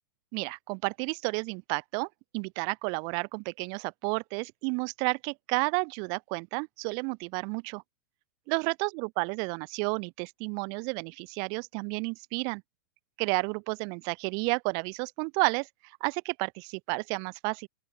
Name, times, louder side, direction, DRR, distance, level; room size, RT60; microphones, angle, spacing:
voice 1, 0.3-2.1 2.3-7.8 8.5-12.6 13.2-15.7 16.0-17.7, right 38 dB, 40° right, 0.4 m, -31 dB
open air
figure-of-eight pair, 95°, 11 cm